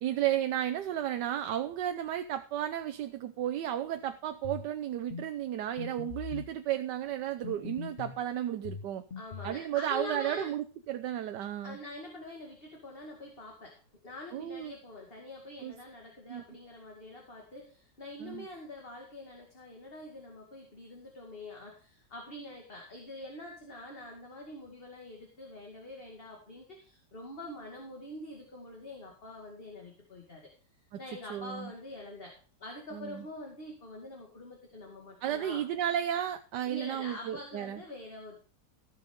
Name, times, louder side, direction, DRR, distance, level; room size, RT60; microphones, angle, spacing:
voice 1, 0.0-9.0 9.4-11.8 14.3-14.7 15.6-15.7 16.3-16.4 18.2-18.5 30.9-31.0 31.3-31.7 32.9-33.2 35.2-37.8, right 11 dB, 75° right, 8 dB, 1.3 m, -33 dB
sound 1, 4.4-4.7 5.1-5.3 5.8-6.5 7.4-8.2 8.6-9.6, left 6 dB, 50° left, 0.7 m, -41 dB
voice 2, 9.2-10.5 11.6-30.5 31.0-32.3 32.6-35.6 36.7-38.4, left 2 dB, 30° left, 0 dB, 2.4 m, -45 dB
16.0 x 6.3 x 5.1 m, 0.39 s
omnidirectional pair, 1.9 m